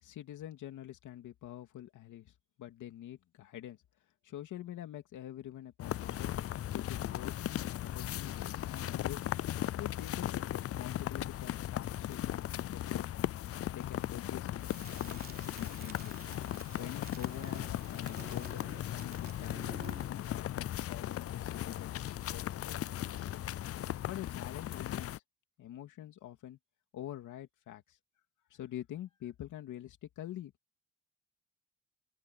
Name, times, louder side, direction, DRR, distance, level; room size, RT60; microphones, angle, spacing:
voice 1, 0.0-3.8 4.2-6.3 6.7-9.3 9.8-13.3 13.7-16.2 16.7-19.8 20.3-23.4 24.0-25.2 25.6-26.6 26.9-28.0 28.5-30.5, left 12 dB, 80° left, 2.8 m, -46 dB
sound 1, 5.8-25.2, left 12 dB, 50° left, 0.5 m, -37 dB
Crackle, 14.6-20.3, right 4 dB, 30° right, 3.7 m, -51 dB
open air
cardioid pair, 90°, 30 cm